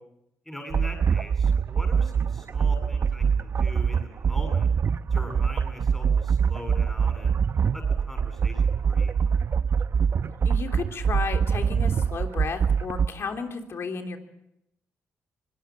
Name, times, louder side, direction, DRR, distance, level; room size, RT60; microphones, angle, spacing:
voice 1, 0.5-4.7 5.1-7.4 7.7-9.2, left 1 dB, 5° left, 4 dB, 7.9 m, -41 dB
sound 1, 0.7-13.1, right 6 dB, 55° right, 0.8 m, -24 dB
voice 2, 10.4-14.2, left 5 dB, 60° left, 4 dB, 3.3 m, -33 dB
24.5 x 19.0 x 7.6 m, 0.81 s
supercardioid pair, 65°, 5 cm